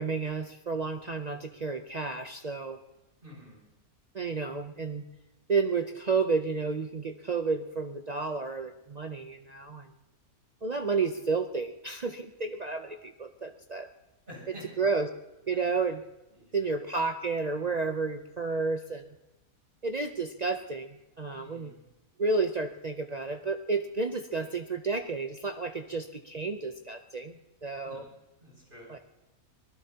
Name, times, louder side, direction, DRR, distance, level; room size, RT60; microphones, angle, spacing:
voice 1, 0.0-2.8 4.1-5.0 5.5-9.9 10.6-13.9 14.8-15.1 15.5-16.0 16.5-19.1 19.8-21.7 22.2-28.0 28.9-29.0, right 4 dB, 55° right, 6 dB, 0.4 m, -31 dB
voice 2, 3.2-3.6 14.3-14.7 15.5-15.8 16.3-16.7 18.4-18.7 19.9-20.1 21.3-21.8 24.3-24.4 27.8-28.1 28.4-28.9, equal, 35° right, -3 dB, 8.0 m, -50 dB
25.0 x 19.0 x 2.9 m, 1.0 s
omnidirectional pair, 1.5 m